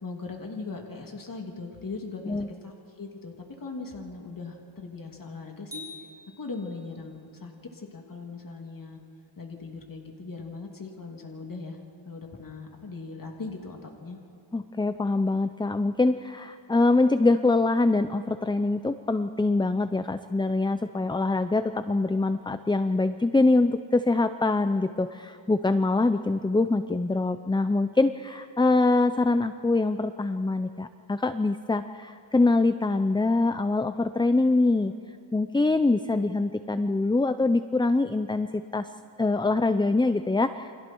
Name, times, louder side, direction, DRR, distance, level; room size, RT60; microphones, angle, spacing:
voice 1, 0.0-3.3 3.6-5.8 6.4-9.0 9.4-11.8 12.0-14.2, left 3 dB, 40° left, 1 dB, 3.0 m, -39 dB
sound 1, 5.7-7.1, left 3 dB, 5° right, 7.4 m, -45 dB
voice 2, 14.5-34.9 35.3-38.5 38.7-38.9 39.2-40.7, left 2 dB, 10° left, 10 dB, 0.5 m, -24 dB
29.5 x 25.5 x 4.6 m, 2.6 s
wide cardioid pair, 100°, 49 cm